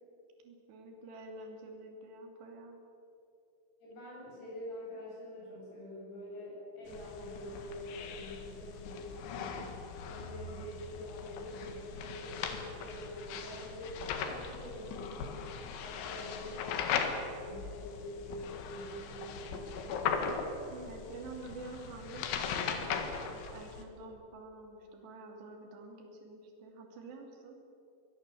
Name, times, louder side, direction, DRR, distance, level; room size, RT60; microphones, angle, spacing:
voice 1, 0.4-2.8 20.7-27.6, right 2 dB, 65° right, 2 dB, 4.7 m, -48 dB
voice 2, 3.8-9.7 10.0-15.5 15.8-20.1, left 1 dB, 60° left, -5 dB, 10.0 m, -45 dB
sound 1, 6.9-23.8, left 6 dB, 80° left, 4.1 m, -39 dB
24.0 x 18.5 x 7.8 m, 2.8 s
omnidirectional pair, 5.5 m